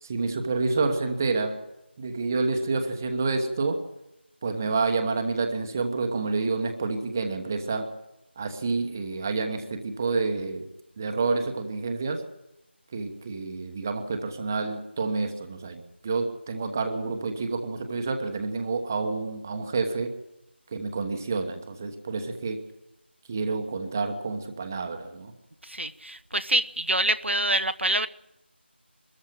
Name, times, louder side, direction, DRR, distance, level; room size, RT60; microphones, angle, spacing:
voice 1, 0.0-1.6 2.0-3.8 4.4-7.9 8.4-10.7 11.0-12.2 12.9-20.1 20.7-22.6 23.3-25.3, right 3 dB, 15° right, 6 dB, 1.1 m, -28 dB
voice 2, 25.6-28.1, right 1 dB, 80° right, 10 dB, 1.0 m, -26 dB
22.5 x 14.0 x 9.0 m, 0.89 s
figure-of-eight pair, 170°, 6 cm